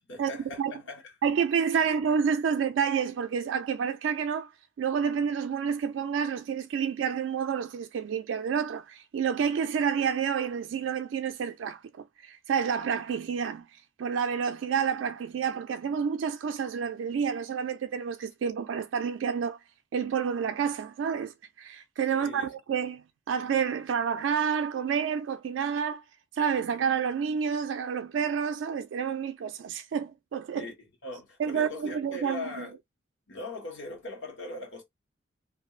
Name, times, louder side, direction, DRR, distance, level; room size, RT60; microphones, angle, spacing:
voice 1, 0.1-1.1 1.7-1.9 22.1-22.5 30.5-30.7 31.0-32.7 33.3-34.8, left 2 dB, 80° left, 1.3 m, -40 dB
voice 2, 1.2-4.5 4.8-11.8 12.2-13.7 14.0-19.6 19.9-26.0 26.3-30.7 31.4-32.7, right 7 dB, 85° right, 0.3 m, -29 dB
2.6 x 2.4 x 3.0 m
head